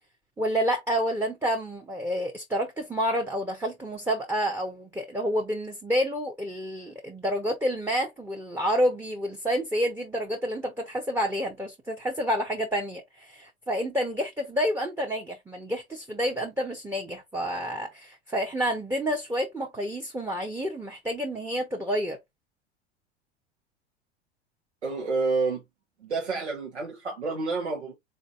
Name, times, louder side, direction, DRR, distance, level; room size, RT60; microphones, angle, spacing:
voice 1, 0.4-22.2, equal, 10° right, 0.9 m, -29 dB
voice 2, 24.8-25.6 26.0-27.9, right 4 dB, 85° right, 1.2 m, -29 dB
4.0 x 3.8 x 2.4 m
figure-of-eight pair, 80°, 33 cm